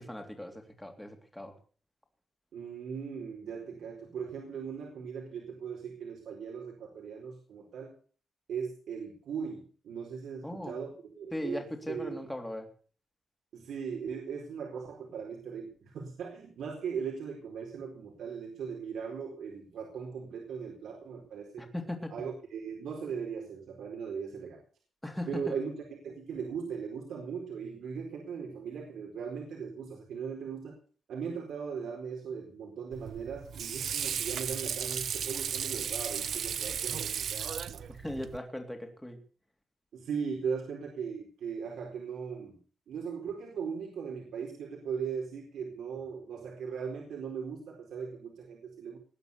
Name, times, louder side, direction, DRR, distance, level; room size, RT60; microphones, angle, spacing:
voice 1, 0.0-1.5 10.4-10.8 11.3-12.7 21.6-22.1 25.0-25.5 37.9-39.2, left 1 dB, 5° left, 4 dB, 3.3 m, -38 dB
voice 2, 2.5-7.9 8.5-12.1 13.5-21.6 22.1-24.6 25.3-25.7 26.0-30.8 31.1-37.8 39.9-42.6 42.9-49.0, right 6 dB, 85° right, 1 dB, 4.4 m, -38 dB
Water / Sink (filling or washing), 32.9-38.4, right 8 dB, 65° right, 1.0 m, -35 dB
20.0 x 9.8 x 6.8 m, 0.42 s
wide cardioid pair, 155°, 0 cm